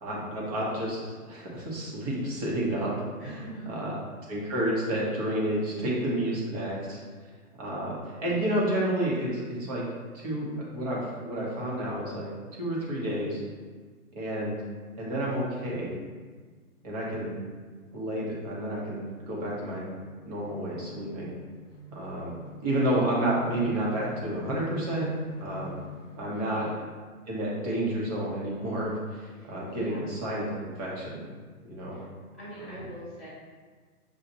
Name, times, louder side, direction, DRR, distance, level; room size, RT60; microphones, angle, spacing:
voice 1, 0.0-2.9 3.2-3.4 3.7-3.9 4.3-7.0 7.6-9.8 10.1-12.3 12.6-13.4 14.1-14.6 15.0-15.9 16.8-17.4 17.9-19.9 20.3-21.3 21.9-22.4 22.6-25.1 25.4-25.8 26.2-26.7 27.3-31.2 31.6-32.0 32.6-32.8, right 1 dB, 25° right, -5 dB, 0.9 m, -30 dB
voice 2, 3.2-3.8 5.7-6.3 26.3-26.7 29.3-30.0 31.9-32.0 32.4-33.3, right 2 dB, ahead, -20 dB, 0.3 m, -42 dB
sound 1, 16.8-26.5, equal, 50° left, 0.8 m, -45 dB
6.6 x 2.4 x 2.8 m, 1.5 s
hypercardioid pair, 155°, 46 cm